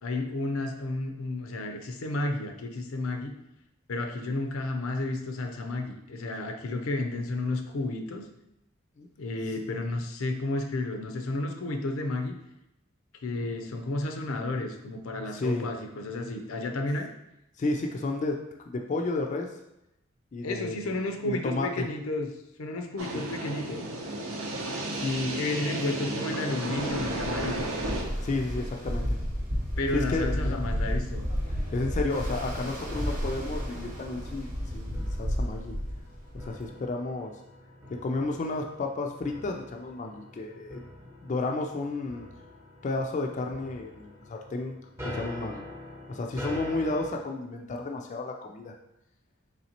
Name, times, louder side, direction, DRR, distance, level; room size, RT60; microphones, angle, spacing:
voice 1, 0.0-3.3 3.9-8.3 9.2-12.4 13.2-17.1 20.4-22.3 22.6-23.8 25.3-27.7 29.8-31.2, left 2 dB, 90° left, 4 dB, 0.5 m, -32 dB
voice 2, 15.3-15.7 17.6-18.4 18.7-19.5 20.3-20.8 21.3-21.9 23.1-23.2 24.9-25.4 28.2-29.2 29.9-30.7 31.7-35.8 36.3-37.3 37.9-40.8 41.2-42.3 42.8-44.7 45.0-45.6 46.1-48.7, left 2 dB, 35° left, 2 dB, 0.3 m, -32 dB
sound 1, 23.0-28.0, right 1 dB, 85° right, 0.7 m, -33 dB
Ocean, 26.7-36.6, equal, 40° right, 0.8 m, -32 dB
sound 2, 32.8-47.1, left 1 dB, 10° right, 0.6 m, -45 dB
4.1 x 3.2 x 2.9 m, 0.87 s
head